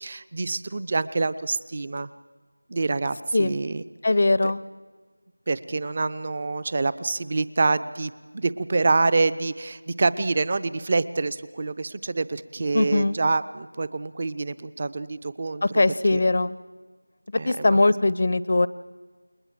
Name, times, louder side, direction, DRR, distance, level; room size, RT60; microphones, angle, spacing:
voice 1, 0.0-2.1 2.7-3.8 4.4-4.5 5.5-15.8 16.1-16.2 17.3-17.8, right 3 dB, 30° right, 16 dB, 0.7 m, -26 dB
voice 2, 4.0-4.6 12.7-13.1 15.7-16.5 17.4-18.7, left 2 dB, 40° left, 18 dB, 0.7 m, -21 dB
29.0 x 21.0 x 7.6 m, 1.4 s
figure-of-eight pair, 170°, 0 cm